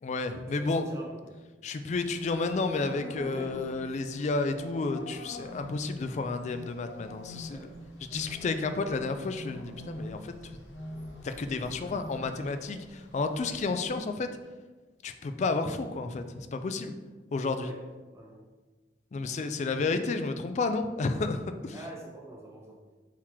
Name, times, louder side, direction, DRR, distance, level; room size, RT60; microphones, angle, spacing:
voice 1, 0.0-0.9 1.6-7.7 8.0-10.6 11.2-14.3 15.0-16.9 17.3-17.7 19.1-21.8, left 3 dB, 40° left, 8 dB, 0.3 m, -31 dB
voice 2, 0.5-1.4 3.2-3.5 7.5-7.7 17.6-17.8 18.1-18.4 21.7-22.8, right 1 dB, 15° right, -3 dB, 0.8 m, -45 dB
sound 1, 1.9-14.0, left 1 dB, 90° left, 0.8 m, -45 dB
3.9 x 3.0 x 4.3 m, 1.3 s
head